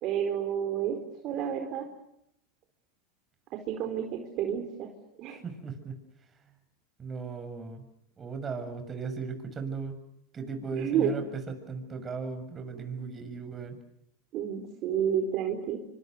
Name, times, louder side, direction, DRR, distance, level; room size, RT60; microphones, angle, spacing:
voice 1, 0.0-1.0 1.2-1.9 3.5-4.9 5.2-5.4 10.7-11.1 14.3-15.8, right 8 dB, 50° right, 4 dB, 4.5 m, -30 dB
voice 2, 5.3-6.0 6.4-6.5 7.0-7.8 8.2-10.0 10.3-13.8, right 5 dB, 25° right, 7 dB, 7.0 m, -37 dB
27.5 x 25.5 x 6.8 m, 0.78 s
hypercardioid pair, 110°, 0 cm